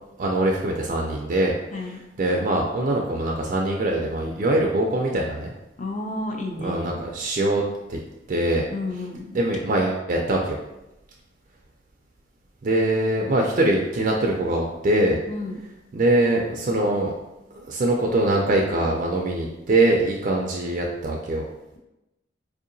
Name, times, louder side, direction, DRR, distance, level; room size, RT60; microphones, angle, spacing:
voice 1, 0.2-1.5 2.2-5.5 6.6-7.6 7.9-8.0 8.3-8.7 9.3-10.6 12.6-15.2 15.9-17.1 17.5-21.5, right 1 dB, 40° right, 0 dB, 0.3 m, -23 dB
voice 2, 1.7-2.0 5.8-7.1 8.7-9.4 15.3-15.6, left 2 dB, 35° left, 2 dB, 0.4 m, -31 dB
4.4 x 2.7 x 2.6 m, 0.96 s
head